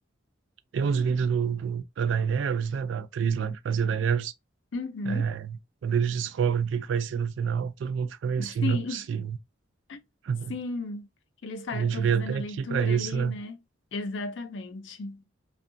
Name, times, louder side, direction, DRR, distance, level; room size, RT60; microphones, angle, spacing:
voice 1, 0.7-4.3 5.1-5.5 5.8-9.4 10.2-10.5 11.7-13.4, right 6 dB, 70° right, 0.3 m, -27 dB
voice 2, 4.7-5.4 8.4-9.1 9.9-10.0 10.5-11.1 11.4-13.6 13.9-15.2, left 3 dB, 70° left, 0.5 m, -34 dB
2.6 x 2.3 x 2.5 m
head